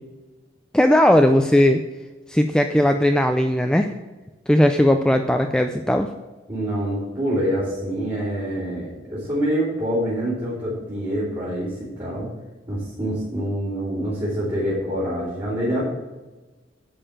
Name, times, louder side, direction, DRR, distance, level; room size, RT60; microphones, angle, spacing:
voice 1, 0.7-1.8 2.3-3.9 4.5-6.1, left 1 dB, 5° left, 5 dB, 0.3 m, -17 dB
voice 2, 6.5-12.3 12.7-15.8, equal, 30° right, -12 dB, 3.1 m, -26 dB
10.0 x 4.4 x 7.3 m, 1.2 s
head